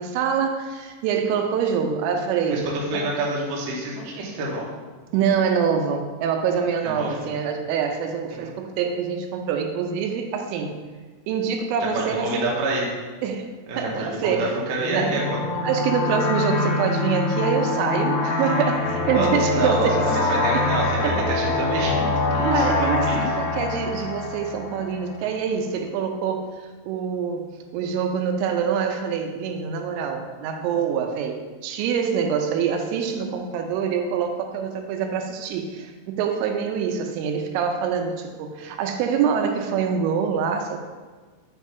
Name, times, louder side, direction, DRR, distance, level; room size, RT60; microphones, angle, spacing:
voice 1, 0.0-2.7 2.9-3.1 5.1-10.8 11.3-12.5 13.2-14.5 14.9-15.2 15.6-20.2 20.5-20.6 21.0-21.3 22.5-27.5 27.7-40.8, right 7 dB, 90° right, 5 dB, 3.2 m, -25 dB
voice 2, 2.5-4.7 6.8-7.2 8.3-8.5 11.9-12.9 13.7-15.4 19.1-21.0 21.3-23.3, right 2 dB, 70° right, -4 dB, 2.1 m, -27 dB
sound 1, 14.8-25.1, left 3 dB, 80° left, 3.0 m, -24 dB
6.9 x 3.2 x 5.1 m, 1.4 s
omnidirectional pair, 5.7 m